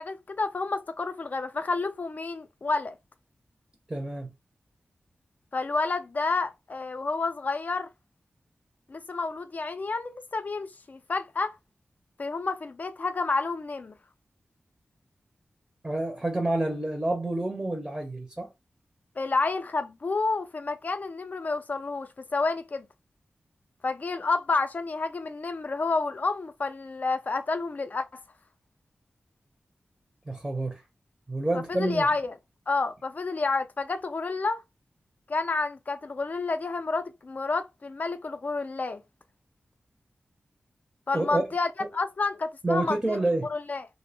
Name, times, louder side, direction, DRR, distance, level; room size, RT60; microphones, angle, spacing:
voice 1, 0.0-3.0 5.5-7.9 8.9-11.6 12.2-13.9 19.2-22.9 23.8-28.2 31.7-32.4 32.7-34.6 35.3-39.0 41.1-43.2 43.5-43.9, left 3 dB, 45° left, 0.4 m, -29 dB
voice 2, 3.9-4.3 15.8-18.5 30.3-30.8 31.3-32.0 41.1-41.5 41.8-41.9 42.6-43.5, right 2 dB, 15° right, 0.5 m, -28 dB
2.5 x 2.0 x 2.7 m
wide cardioid pair, 115°, 4 cm